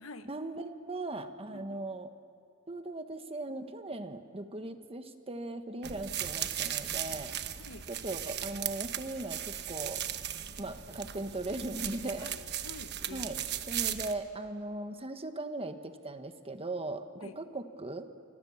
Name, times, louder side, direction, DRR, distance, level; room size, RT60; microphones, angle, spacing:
voice 1, 0.3-2.1 2.7-7.3 7.9-10.0 10.6-12.3 13.1-13.4 13.7-18.1, right 2 dB, 30° right, 8 dB, 1.4 m, -38 dB
sound 1, 5.8-14.1, right 10 dB, 55° right, 1.1 m, -37 dB
voice 2, 12.2-13.5 13.8-14.0 17.2-17.4, left 2 dB, 75° left, 9 dB, 1.4 m, -48 dB
29.0 x 25.5 x 7.3 m, 2.3 s
head